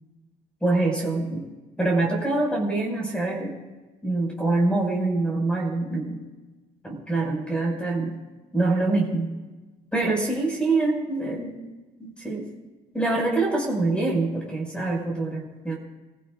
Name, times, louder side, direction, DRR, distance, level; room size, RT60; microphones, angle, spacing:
voice 1, 0.6-1.4 1.8-3.6 4.0-6.2 6.8-8.1 8.5-9.3 9.9-11.6 12.0-12.5 12.9-15.8, right 2 dB, 5° left, -1 dB, 5.8 m, -25 dB
29.5 x 15.5 x 2.5 m, 1.2 s
cardioid pair, 110°, 17 cm